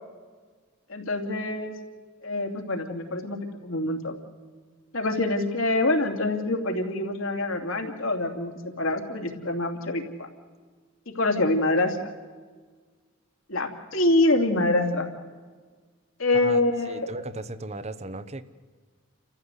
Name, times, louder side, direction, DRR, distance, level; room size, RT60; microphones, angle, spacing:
voice 1, 0.9-1.8 2.2-3.4 3.6-4.1 4.9-10.3 11.1-12.1 13.5-15.1 16.2-17.1, left 2 dB, 70° left, 4 dB, 2.8 m, -25 dB
voice 2, 16.9-18.4, right 2 dB, 30° right, 14 dB, 1.0 m, -36 dB
30.0 x 14.5 x 8.2 m, 1.5 s
head